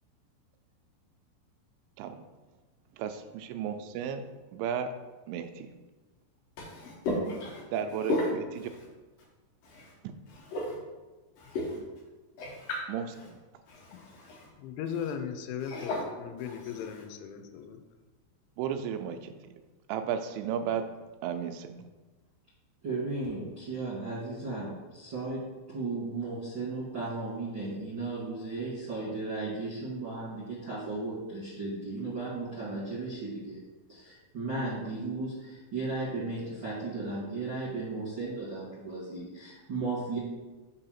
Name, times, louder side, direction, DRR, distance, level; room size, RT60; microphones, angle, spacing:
voice 1, 2.9-4.3 4.5-4.9 5.3-5.7 7.7-8.7 10.0-10.1 12.9-13.4 18.6-19.6 19.9-20.9 21.2-21.8, right 8 dB, 90° right, 8 dB, 2.9 m, -34 dB
voice 2, 6.6-7.6 10.5-10.7 11.5-11.8 12.4-12.8 13.7-13.8 14.3-14.4 15.7-16.0, left 1 dB, 65° left, -4 dB, 2.3 m, -34 dB
voice 3, 14.6-17.8, left 8 dB, 85° left, 7 dB, 3.0 m, -37 dB
voice 4, 22.8-25.4 25.7-33.6 33.9-40.2, right 3 dB, 60° right, -11 dB, 1.2 m, -35 dB
6.8 x 2.7 x 5.6 m, 1.2 s
omnidirectional pair, 5.2 m